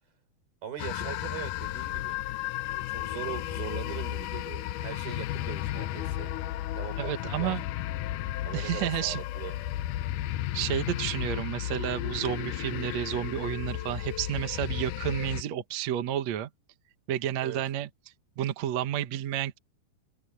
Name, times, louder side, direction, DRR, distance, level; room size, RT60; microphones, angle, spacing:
voice 1, 0.6-2.2 2.7-6.3 6.8-7.6 8.5-9.6 17.4-17.6, right 9 dB, 75° right, 6.9 m, -40 dB
sound 1, 0.8-15.4, left 14 dB, 80° left, 1.9 m, -34 dB
voice 2, 7.0-7.6 8.5-9.2 10.5-16.5 17.1-17.9 18.4-19.6, right 11 dB, 60° right, 2.1 m, -31 dB
omnidirectional pair, 4.3 m